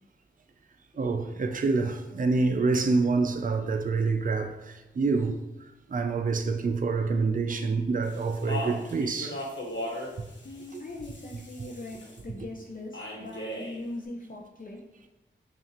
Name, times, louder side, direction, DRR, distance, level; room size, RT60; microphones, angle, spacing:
voice 1, 1.0-5.4 5.9-9.4 10.7-10.8, right 4 dB, 40° right, 0.4 m, -27 dB
Speech, 8.0-12.2 12.9-13.8, left 1 dB, 65° left, 1.2 m, -38 dB
voice 2, 10.4-14.8, left 2 dB, 45° left, 0.6 m, -40 dB
5.6 x 2.5 x 3.0 m
cardioid pair, 45°, 21 cm